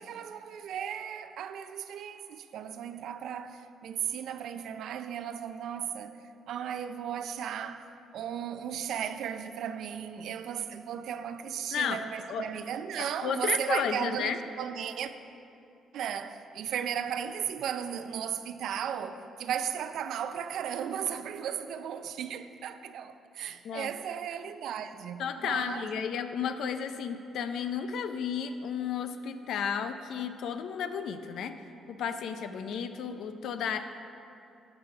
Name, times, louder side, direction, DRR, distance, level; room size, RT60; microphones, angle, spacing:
voice 1, 0.0-15.1 15.9-25.9, right 8 dB, 75° right, 0.5 m, -35 dB
voice 2, 11.7-12.0 12.3-12.5 13.2-14.4 23.6-23.9 25.2-31.6 31.9-33.9, left 7 dB, 75° left, 0.5 m, -33 dB
11.5 x 6.9 x 4.8 m
cardioid pair, 90°, 0 cm